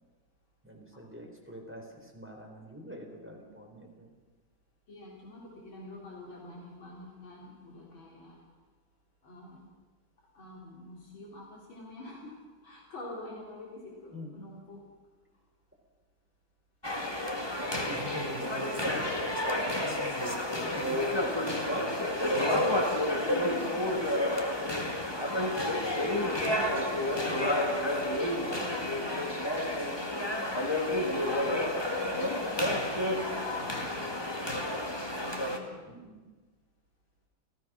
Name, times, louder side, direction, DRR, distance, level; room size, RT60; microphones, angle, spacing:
voice 1, 0.6-4.1 14.1-14.3 17.0-17.1 17.6-19.3 19.6-21.6 27.1-27.4 33.6-34.6 35.9-36.3, equal, 5° right, 1 dB, 4.0 m, -44 dB
voice 2, 4.9-8.4 9.2-9.6 10.3-12.4 12.6-14.8 19.2-20.3 20.6-21.1 23.0-24.1 24.4-30.6 31.0-32.5 33.1-34.5 35.0-35.8, left 2 dB, 90° left, -2 dB, 4.6 m, -46 dB
sound 1, 16.8-35.6, left 1 dB, 15° left, 1.8 m, -30 dB
29.5 x 16.0 x 6.3 m, 1.3 s
omnidirectional pair, 2.1 m